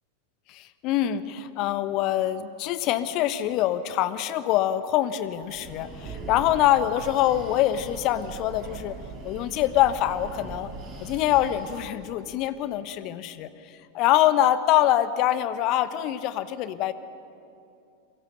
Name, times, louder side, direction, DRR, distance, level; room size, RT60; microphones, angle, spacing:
voice 1, 0.5-8.9 9.2-10.7 11.0-13.5 13.9-16.9, left 12 dB, 40° left, 14 dB, 1.2 m, -24 dB
Breathing, 5.3-11.9, right 3 dB, 35° right, 6.0 m, -40 dB
28.5 x 22.5 x 6.9 m, 2.6 s
figure-of-eight pair, 90°, 0 cm